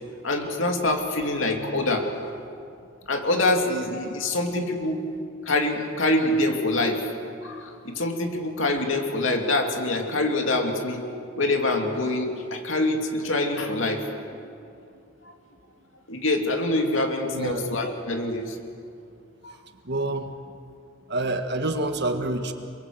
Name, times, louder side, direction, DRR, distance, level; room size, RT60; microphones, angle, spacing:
voice 1, 0.2-2.1 3.1-5.0 5.5-7.0 7.4-11.0 11.4-14.0 16.1-18.6 19.4-19.5, left 2 dB, 75° left, 3 dB, 2.8 m, -25 dB
voice 2, 17.3-17.7 19.8-20.3 21.1-22.5, right 2 dB, 55° right, 6 dB, 1.7 m, -27 dB
29.5 x 22.5 x 8.1 m, 2.5 s
head